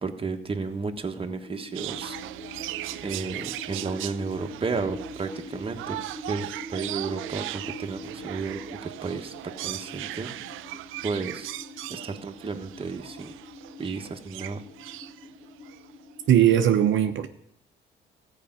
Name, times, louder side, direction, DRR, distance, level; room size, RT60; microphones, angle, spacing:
voice 1, 0.0-2.2 3.0-6.0 6.3-10.3 11.0-11.5 11.9-13.3 13.8-14.6, right 4 dB, 25° right, 4 dB, 1.3 m, -33 dB
sound 1, 1.4-16.4, left 1 dB, 60° left, 3.1 m, -44 dB
sound 2, 1.7-15.9 16.5-16.6, right 15 dB, 85° right, 0.4 m, -38 dB
voice 2, 16.3-17.3, right 10 dB, 70° right, 6 dB, 0.8 m, -19 dB
14.0 x 5.0 x 8.9 m, 0.76 s
cardioid pair, 90°, 20 cm